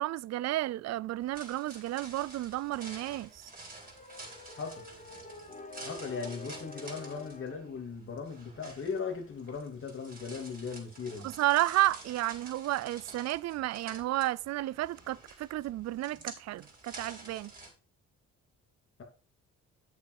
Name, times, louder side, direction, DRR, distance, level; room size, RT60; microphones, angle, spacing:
voice 1, 0.0-3.5 11.2-17.5, right 16 dB, 60° right, 0.4 m, -32 dB
sound 1, 1.2-17.7, right 2 dB, 30° right, 4.5 m, -50 dB
sound 2, 3.7-7.8, left 3 dB, 25° left, 2.1 m, -48 dB
voice 2, 4.5-4.8 5.8-11.3, left 5 dB, 45° left, 2.7 m, -38 dB
8.3 x 6.8 x 4.7 m
cardioid pair, 90°, 30 cm